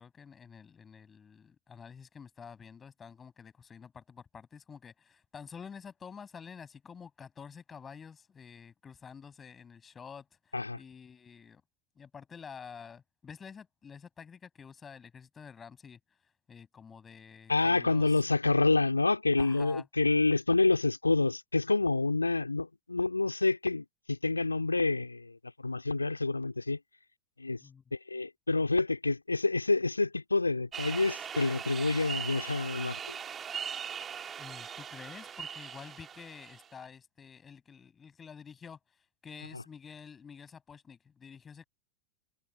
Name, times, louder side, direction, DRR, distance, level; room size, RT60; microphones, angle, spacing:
voice 1, 0.0-11.6 12.0-16.0 16.5-18.2 19.4-19.9 27.6-27.8 34.4-38.8 39.2-41.7, left 6 dB, 20° left, 7.0 m, -49 dB
voice 2, 17.5-25.4 25.6-26.8 27.4-27.6 27.9-33.2, left 3 dB, 80° left, 2.8 m, -28 dB
sound 1, 30.7-36.9, right 7 dB, 20° right, 3.4 m, -40 dB
figure-of-eight pair, 90°, 0 cm